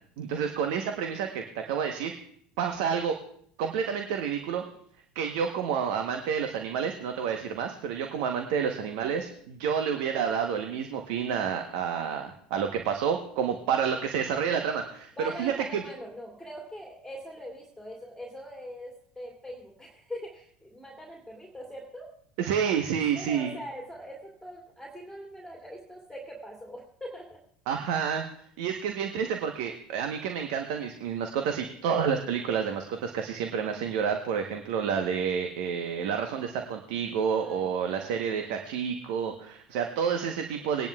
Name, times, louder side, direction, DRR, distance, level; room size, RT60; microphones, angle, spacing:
voice 1, 0.2-2.1 2.6-3.2 3.6-4.6 5.1-15.1 15.4-15.8 22.4-23.5 27.7-28.3 28.6-40.9, right 7 dB, 65° right, 5 dB, 1.0 m, -29 dB
voice 2, 15.2-22.1 23.1-27.4 37.4-38.1, equal, ahead, -1 dB, 2.5 m, -42 dB
20.5 x 10.5 x 2.3 m, 0.65 s
hypercardioid pair, 80°, 4 cm